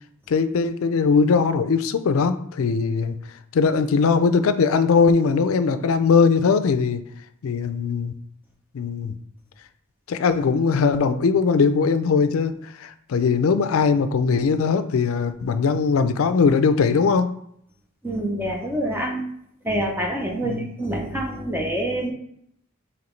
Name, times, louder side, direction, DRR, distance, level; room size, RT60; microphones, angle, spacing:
voice 1, 0.3-3.2 3.5-7.0 7.4-8.1 8.7-9.1 10.1-17.3 20.4-20.6, left 5 dB, 70° left, 11 dB, 0.4 m, -20 dB
voice 2, 18.0-19.3 19.6-22.1, right 1 dB, 10° right, 0 dB, 0.6 m, -26 dB
4.9 x 3.0 x 3.1 m, 0.70 s
head